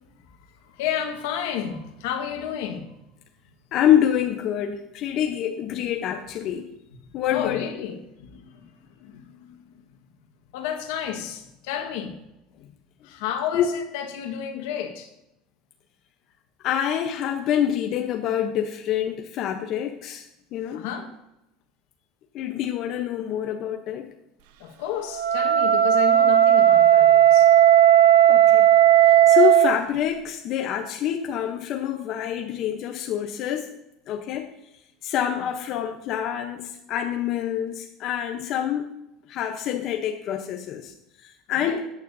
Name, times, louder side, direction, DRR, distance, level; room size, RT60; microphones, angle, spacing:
voice 1, 0.3-2.9 7.3-9.7 10.5-12.2 13.0-15.1 20.6-21.1 24.6-27.5 41.5-41.8, left 9 dB, 80° left, 1.5 m, -32 dB
voice 2, 3.7-6.7 7.1-7.6 13.5-13.7 16.6-20.3 20.5-20.8 22.3-24.1 28.3-28.7 29.3-33.7 34.1-34.5 35.0-38.9 39.3-40.9 41.2-41.9, left 10 dB, 45° left, 0.8 m, -26 dB
Wind instrument woodwind instrument, 25.1-29.8, right 11 dB, 80° right, 0.7 m, -15 dB
13.5 x 9.1 x 2.7 m
cardioid pair, 145°, 0 cm